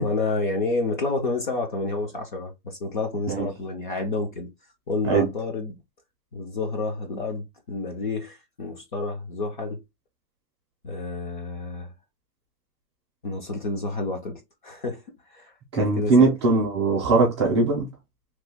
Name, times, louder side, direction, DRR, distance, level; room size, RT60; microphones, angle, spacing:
voice 1, 0.0-4.5 4.9-5.8 6.3-9.8 10.8-11.9 13.2-15.0 15.3-16.3, left 3 dB, 30° left, 0.5 m, -29 dB
voice 2, 15.7-17.9, right 3 dB, 20° right, 0.5 m, -20 dB
3.0 x 2.3 x 3.4 m
hypercardioid pair, 160°, 48 cm